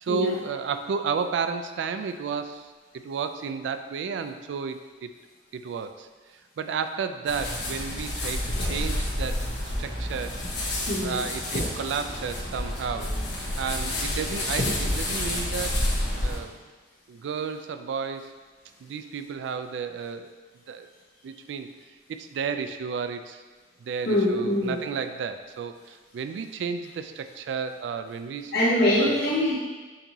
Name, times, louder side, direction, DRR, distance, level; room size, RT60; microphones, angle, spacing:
voice 1, 0.0-5.1 5.5-6.1 6.6-10.4 11.0-13.2 13.6-15.8 16.2-16.6 17.1-18.3 18.8-20.3 20.7-20.9 21.2-21.7 22.1-23.4 23.8-28.5 29.0-29.2, right 6 dB, 90° right, 8 dB, 0.3 m, -32 dB
sound 1, 7.3-16.4, left 1 dB, 80° left, 1.0 m, -29 dB
voice 2, 10.9-11.2 24.0-24.7 28.5-29.6, left 1 dB, 60° left, -7 dB, 1.4 m, -23 dB
6.6 x 3.0 x 2.7 m, 1.3 s
head